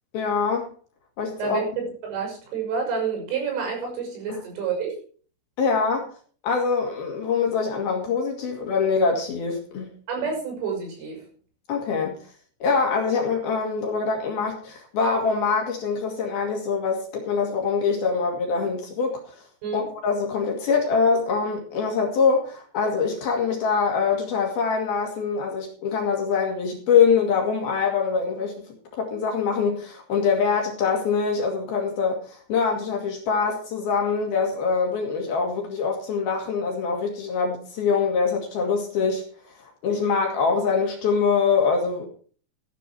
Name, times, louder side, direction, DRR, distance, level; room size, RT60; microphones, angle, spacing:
voice 1, 0.1-0.7 1.2-1.6 4.3-4.4 5.6-6.1 6.4-9.9 11.7-12.2 12.6-19.2 19.7-28.5 28.9-39.2 39.8-42.1, left 5 dB, 55° left, 2 dB, 3.7 m, -24 dB
voice 2, 1.4-5.0 10.1-11.3 19.6-19.9, right 5 dB, 70° right, 2 dB, 8.5 m, -29 dB
15.0 x 11.0 x 4.5 m, 0.42 s
omnidirectional pair, 5.9 m